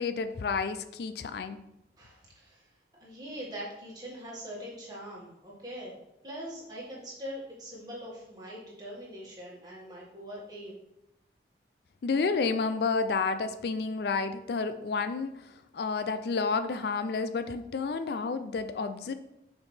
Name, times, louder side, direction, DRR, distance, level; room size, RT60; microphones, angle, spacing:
voice 1, 0.0-1.6 12.0-19.1, left 4 dB, 60° left, 10 dB, 0.4 m, -30 dB
voice 2, 2.0-2.7 2.9-6.0 6.2-10.8, equal, 20° right, -5 dB, 1.9 m, -42 dB
6.3 x 5.1 x 3.4 m, 0.85 s
head